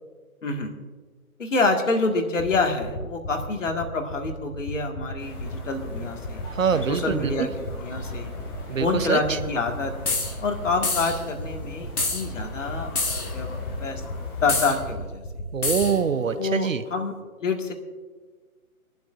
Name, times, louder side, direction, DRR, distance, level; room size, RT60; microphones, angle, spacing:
voice 1, 0.4-0.7 1.4-6.4 6.9-7.5 7.8-8.3 8.8-9.9 10.4-14.0 14.4-15.2 16.3-17.1 17.4-17.7, left 3 dB, 60° left, 4 dB, 1.9 m, -27 dB
sound 1, 2.4-15.9, left 3 dB, 45° left, 1.6 m, -35 dB
sound 2, 5.2-14.9, left 3 dB, 15° left, 1.1 m, -38 dB
voice 2, 6.5-7.5 8.7-9.2 15.5-16.8, right 6 dB, 60° right, 12 dB, 0.9 m, -24 dB
sound 3, 10.1-10.3 10.8-11.2 12.0-12.3 13.0-13.3 14.5-14.8 15.6-16.0, left 3 dB, 80° left, 1.8 m, -26 dB
26.0 x 11.5 x 2.5 m, 1.4 s
figure-of-eight pair, 140°, 44 cm